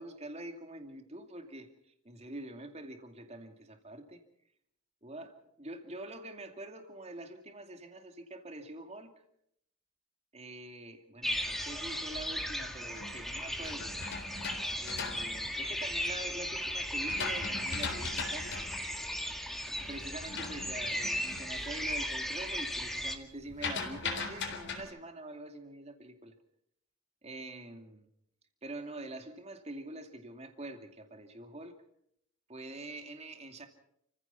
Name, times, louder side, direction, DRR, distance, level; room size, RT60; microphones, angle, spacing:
voice 1, 0.0-1.7 2.0-4.2 5.0-9.1 10.3-13.9 14.8-18.5 19.8-26.3 27.2-28.1 28.6-31.7 32.5-33.7, right 2 dB, 30° right, 5 dB, 2.5 m, -45 dB
sound 1, 11.2-23.2, equal, ahead, 1.8 m, -36 dB
sound 2, 12.4-16.2 16.7-21.6 21.9-22.3 22.6-24.8, left 4 dB, 55° left, 3.8 m, -40 dB
30.0 x 15.5 x 5.9 m, 0.74 s
head